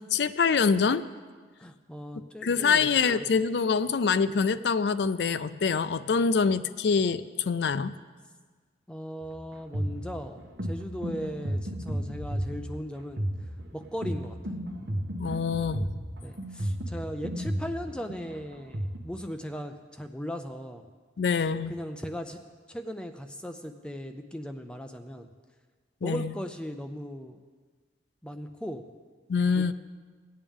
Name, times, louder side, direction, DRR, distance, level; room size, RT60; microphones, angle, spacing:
voice 1, 0.1-1.0 2.4-7.9 15.2-15.9 21.2-21.7 26.0-26.3 29.3-29.7, left 5 dB, 70° left, 13 dB, 0.4 m, -25 dB
voice 2, 1.6-2.9 3.2-3.3 8.9-13.3 13.7-14.6 16.2-20.8 21.7-22.4 22.7-25.3 26.0-27.4 28.2-28.9 29.5-29.7, equal, 5° left, 6 dB, 0.4 m, -38 dB
sound 1, 9.2-19.0, equal, 65° right, 1.1 m, -33 dB
17.5 x 8.8 x 3.6 m, 1.5 s
head